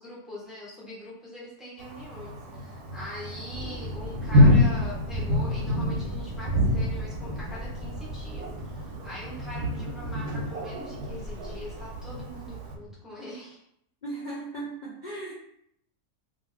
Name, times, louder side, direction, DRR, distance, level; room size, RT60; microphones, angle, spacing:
voice 1, 0.0-13.6, left 1 dB, ahead, -7 dB, 0.3 m, -42 dB
Thunder, 1.8-12.7, left 1 dB, 85° right, 1.1 m, -27 dB
sound 1, 3.5-13.0, right 1 dB, 40° right, 0.7 m, -41 dB
voice 2, 14.0-15.3, right 2 dB, 80° left, -7 dB, 0.4 m, -36 dB
2.5 x 2.5 x 3.1 m, 0.73 s
omnidirectional pair, 1.7 m